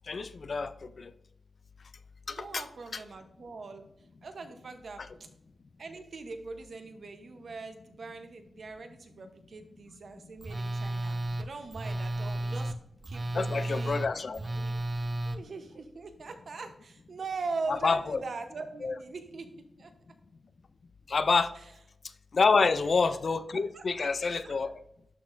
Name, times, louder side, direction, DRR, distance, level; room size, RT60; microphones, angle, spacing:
voice 1, 0.1-1.1 2.3-2.6 13.3-14.4 17.7-18.2 18.8-19.0 21.1-21.5 22.3-24.7, left 4 dB, 45° left, 13 dB, 0.3 m, -27 dB
voice 2, 2.3-3.9 4.2-5.3 5.8-12.7 13.1-14.8 15.2-19.9 22.5-22.7 23.7-24.5, right 4 dB, 55° right, 7 dB, 0.7 m, -41 dB
Telephone, 10.4-15.4, right 1 dB, 20° right, 0.4 m, -33 dB
11.5 x 4.1 x 2.5 m, 0.78 s
wide cardioid pair, 165°, 0 cm